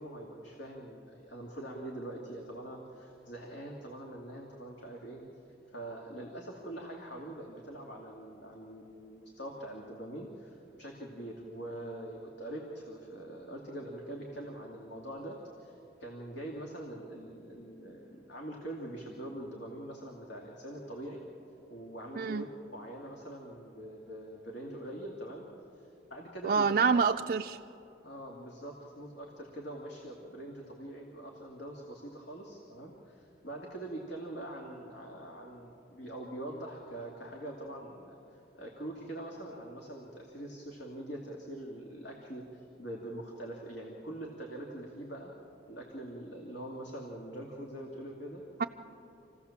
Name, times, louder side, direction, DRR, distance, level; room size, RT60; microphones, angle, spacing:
voice 1, 0.0-5.2 5.7-21.2 21.7-22.5 22.7-25.5 25.7-26.8 28.0-45.3 45.7-48.4, right 1 dB, 70° left, -1 dB, 2.4 m, -43 dB
voice 2, 22.2-22.5 26.4-27.6 48.6-48.7, right 5 dB, 45° right, 4 dB, 0.4 m, -27 dB
27.0 x 16.0 x 7.2 m, 2.8 s
head